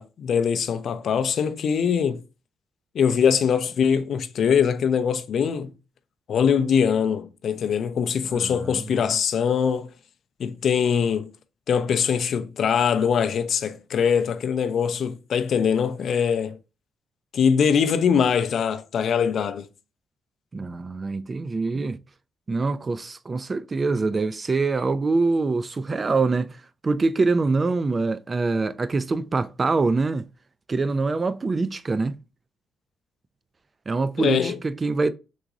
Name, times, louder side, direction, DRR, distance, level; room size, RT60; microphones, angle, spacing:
voice 1, 0.0-2.2 2.9-5.7 6.3-9.9 10.4-11.3 11.7-16.5 17.3-19.7 21.7-21.8 34.2-34.5, left 7 dB, 60° left, 0.4 m, -22 dB
voice 2, 8.3-9.1 20.5-22.0 22.5-30.3 30.7-32.1 33.9-35.1, right 3 dB, 30° right, 0.3 m, -24 dB
3.8 x 2.9 x 2.4 m
cardioid pair, 90°, 0 cm